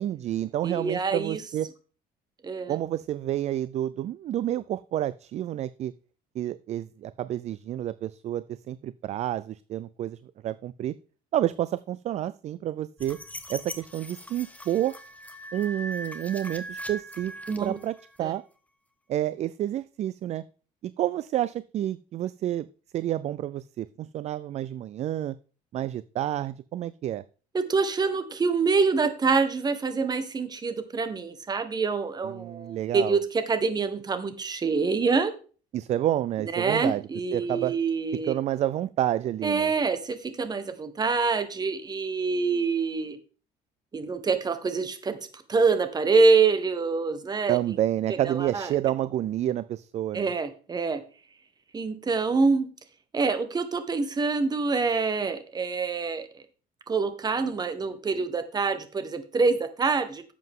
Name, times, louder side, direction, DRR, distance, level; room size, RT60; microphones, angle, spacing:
voice 1, 0.0-1.7 2.7-5.9 6.4-10.2 10.4-10.9 11.3-13.2 13.5-15.0 15.5-17.3 17.6-18.4 19.1-20.4 21.0-22.7 22.9-25.4 25.7-27.2 32.2-33.2 35.7-37.7 38.3-39.7 47.5-50.3, right 12 dB, 45° right, 17 dB, 0.4 m, -29 dB
voice 2, 0.6-1.4 2.4-2.7 17.5-17.8 18.2-18.3 27.5-35.3 36.4-38.3 39.4-43.2 43.9-47.7 48.1-48.7 50.1-51.0 51.7-52.7 53.1-56.4 56.9-60.2, right 4 dB, 25° right, 10 dB, 1.3 m, -26 dB
sound 1, 13.0-18.2, equal, 10° left, 1.3 m, -40 dB
11.0 x 7.6 x 3.7 m, 0.38 s
cardioid pair, 120°, 16 cm